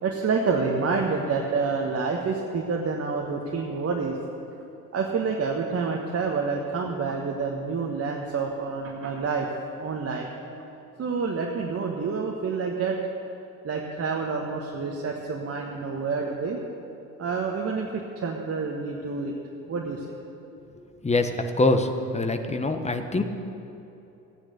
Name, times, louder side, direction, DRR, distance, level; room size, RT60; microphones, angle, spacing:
voice 1, 0.0-4.2 4.9-9.5 9.8-10.3 11.0-13.0 13.6-16.6 17.2-19.4 19.7-20.2, right 4 dB, 30° right, 0 dB, 1.4 m, -28 dB
voice 2, 20.7-23.2, left 2 dB, 15° left, 7 dB, 1.2 m, -25 dB
15.0 x 9.7 x 6.7 m, 2.8 s
figure-of-eight pair, 55°, 46 cm